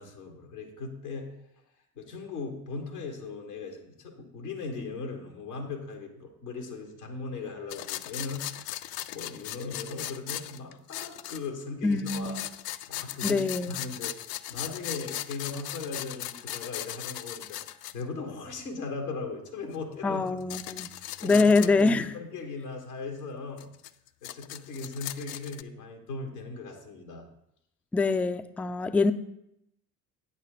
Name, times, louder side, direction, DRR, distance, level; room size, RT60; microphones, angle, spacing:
voice 1, 0.0-1.3 1.9-12.5 12.9-20.3 21.0-23.7 24.2-27.3, left 4 dB, 90° left, 2 dB, 1.4 m, -38 dB
sound 1, 7.7-11.6 11.9-18.0 19.7-19.8 20.3-21.9 23.6-25.6, left 14 dB, 55° left, 0.5 m, -38 dB
voice 2, 11.8-12.4 13.2-13.8 20.0-20.9 21.2-22.1 27.9-29.1, left 3 dB, 5° left, 11 dB, 0.3 m, -24 dB
8.9 x 4.2 x 6.5 m, 0.81 s
hypercardioid pair, 55°, 44 cm